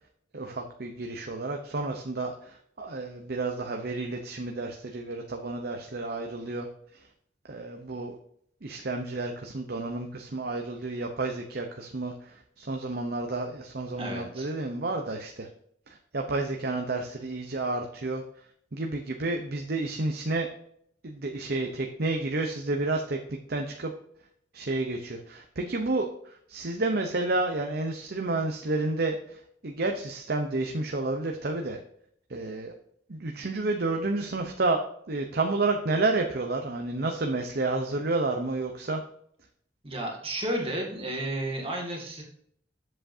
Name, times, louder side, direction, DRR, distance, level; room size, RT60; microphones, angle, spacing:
voice 1, 0.3-6.7 7.5-8.2 8.6-15.5 15.9-18.2 18.7-20.5 21.0-23.2 23.5-23.9 24.5-31.8 32.3-32.7 33.1-34.8 35.1-39.0, right 2 dB, 55° right, 3 dB, 0.8 m, -30 dB
voice 2, 14.0-14.5 39.8-42.2, right 1 dB, 30° right, -1 dB, 2.1 m, -32 dB
7.8 x 7.5 x 2.7 m, 0.67 s
head